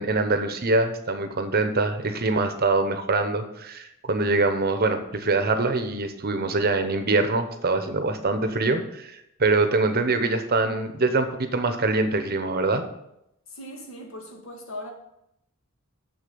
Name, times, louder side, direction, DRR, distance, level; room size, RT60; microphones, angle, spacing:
voice 1, 0.0-12.8, right 3 dB, 45° right, 9 dB, 0.9 m, -24 dB
voice 2, 13.5-14.9, left 1 dB, 65° left, 2 dB, 1.9 m, -39 dB
7.0 x 6.6 x 6.9 m, 0.80 s
head